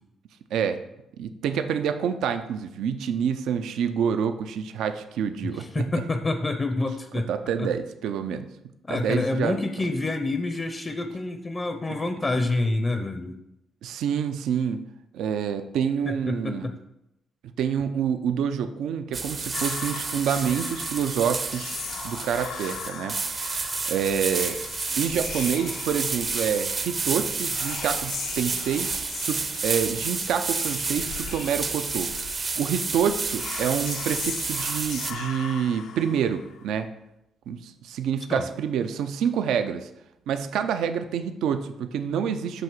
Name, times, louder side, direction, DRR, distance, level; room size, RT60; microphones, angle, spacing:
voice 1, 1.2-6.0 7.1-8.4 8.9-9.6 13.8-14.8 15.1-16.7 17.6-21.7 22.0-23.2 23.6-24.6 25.0-28.9 29.2-32.1 32.6-36.9 37.5-39.9 40.3-42.6, right 8 dB, 80° right, 9 dB, 0.4 m, -27 dB
voice 2, 5.4-7.3 7.6-7.7 8.9-13.4 16.1-16.7 38.3-38.4, left 2 dB, 25° left, 8 dB, 0.5 m, -27 dB
sound 1, 19.1-35.1, right 4 dB, 40° right, 0.6 m, -30 dB
Whispering, 19.5-36.7, left 7 dB, 80° left, 0.5 m, -39 dB
7.6 x 2.8 x 6.0 m, 0.84 s
cardioid pair, 90°, 0 cm